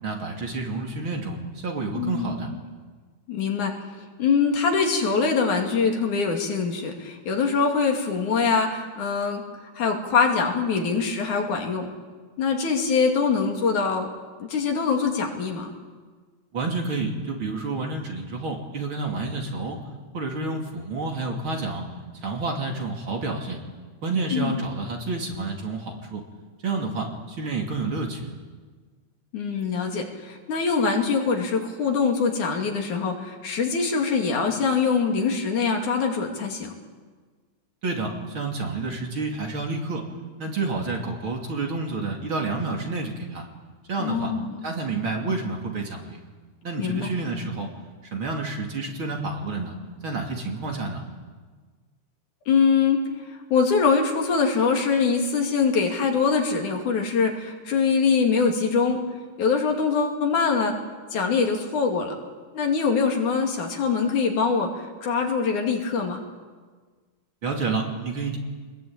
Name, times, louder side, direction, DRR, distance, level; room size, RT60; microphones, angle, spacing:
voice 1, 0.0-2.5 16.5-19.8 20.1-21.8 22.2-23.6 24.0-26.2 26.6-28.3 37.8-40.1 40.4-43.5 43.9-44.3 44.6-46.2 46.6-47.7 48.1-49.8 50.0-51.0 67.4-68.4, right 3 dB, 45° right, 1 dB, 3.4 m, -29 dB
voice 2, 1.9-2.6 3.3-3.7 4.2-9.4 9.7-11.9 12.4-14.1 14.5-15.7 24.3-24.6 29.3-36.7 44.0-44.6 46.8-47.1 52.5-53.0 53.5-59.0 59.4-60.7 61.1-62.1 62.5-66.2, left 5 dB, 80° left, 2 dB, 4.0 m, -23 dB
25.0 x 21.0 x 8.9 m, 1.5 s
omnidirectional pair, 3.4 m